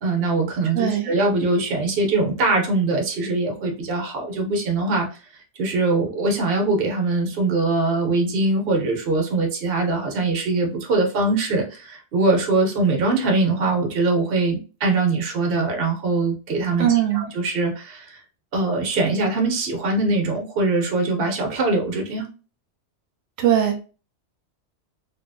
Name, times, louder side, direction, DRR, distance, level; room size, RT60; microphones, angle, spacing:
voice 1, 0.0-5.1 5.6-16.9 17.1-18.2 18.5-22.3, right 3 dB, 55° right, 3 dB, 0.9 m, -22 dB
voice 2, 0.7-1.1 16.8-17.3 23.4-23.8, right 10 dB, 85° right, 4 dB, 0.9 m, -20 dB
2.8 x 2.3 x 2.5 m, 0.34 s
omnidirectional pair, 1.2 m